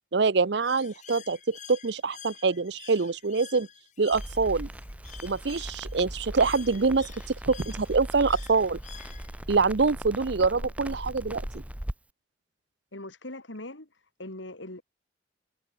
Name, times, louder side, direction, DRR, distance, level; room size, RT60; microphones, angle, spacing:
voice 1, 0.1-3.7 4.0-4.7 5.2-7.1 7.5-8.8 9.5-11.4, right 4 dB, 65° right, 0.7 m, -25 dB
Bird, 0.6-9.6, left 9 dB, 40° left, 2.4 m, -49 dB
Crackle, 4.1-11.9, equal, 5° right, 0.7 m, -38 dB
voice 2, 12.9-14.8, left 1 dB, 85° left, 4.5 m, -41 dB
head